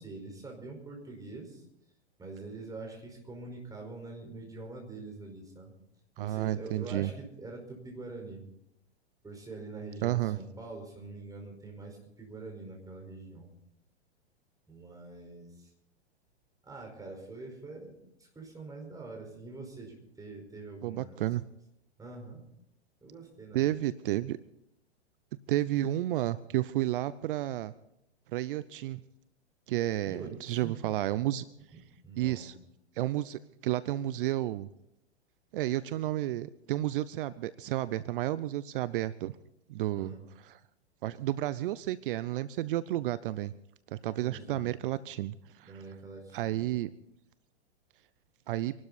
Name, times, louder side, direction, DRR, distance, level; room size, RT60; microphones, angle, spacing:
voice 1, 0.0-1.6 2.2-5.7 6.2-8.5 9.2-13.5 14.7-15.7 16.6-17.9 18.2-21.2 22.0-22.4 23.0-23.6 30.0-30.8 31.7-32.5 39.9-40.2 44.2-44.7 45.6-46.8, right 3 dB, 10° right, 1 dB, 4.9 m, -45 dB
voice 2, 6.2-7.1 10.0-10.4 20.8-21.4 23.5-24.4 25.5-27.7 28.3-29.0 29.7-31.4 32.2-32.5 33.0-34.7 35.5-39.3 39.7-40.1 40.4-40.6 41.0-43.5 43.9-45.7 46.3-46.9 48.5-48.7, right 14 dB, 50° right, 17 dB, 0.7 m, -31 dB
26.0 x 12.5 x 4.2 m, 0.80 s
hypercardioid pair, 110°, 34 cm